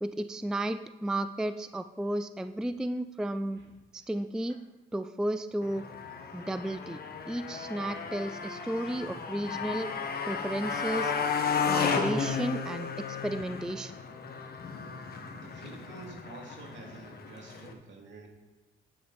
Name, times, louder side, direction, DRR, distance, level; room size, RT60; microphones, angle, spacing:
voice 1, 0.0-3.6 3.9-4.6 4.9-5.9 6.3-9.9 10.3-11.1 11.7-13.9, right 1 dB, 5° right, 11 dB, 0.3 m, -33 dB
Motorcycle, 5.6-17.7, left 5 dB, 50° left, 1.2 m, -34 dB
voice 2, 15.3-18.3, right 3 dB, 65° right, 1 dB, 2.3 m, -49 dB
9.4 x 8.8 x 4.0 m, 1.2 s
cardioid pair, 90°, 20 cm